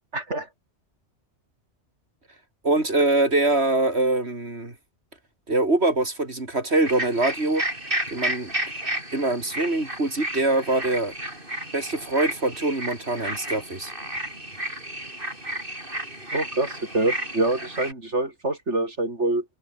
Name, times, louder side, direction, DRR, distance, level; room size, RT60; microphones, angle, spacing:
voice 1, 0.1-0.5 16.3-19.4, right 2 dB, 85° right, 5.7 m, -25 dB
voice 2, 2.6-4.7 5.5-7.6 8.1-8.5 9.1-11.1 11.7-13.9, right 2 dB, 65° right, 4.7 m, -23 dB
sound 1, 6.8-17.9, right 1 dB, 50° right, 8.3 m, -32 dB
omnidirectional pair, 1.2 m